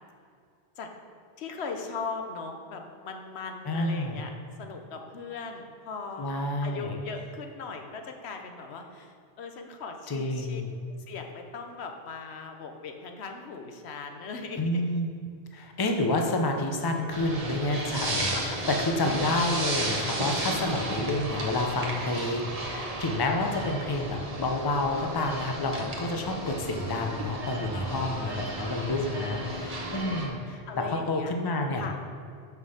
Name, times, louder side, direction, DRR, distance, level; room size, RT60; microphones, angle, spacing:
voice 1, 1.4-4.3 4.6-6.3 6.6-10.7 11.1-14.8 18.3-18.6 26.0-26.1 27.7-29.7 30.7-31.3 31.8-32.0, left 4 dB, 90° left, 4 dB, 1.1 m, -39 dB
voice 2, 3.7-4.2 6.2-7.0 10.1-10.7 14.6-15.1 15.5-31.9, left 2 dB, 25° left, 3 dB, 0.6 m, -29 dB
sound 1, 17.1-30.3, right 1 dB, 40° right, 1.1 m, -34 dB
5.8 x 5.7 x 6.4 m, 2.3 s
omnidirectional pair, 1.1 m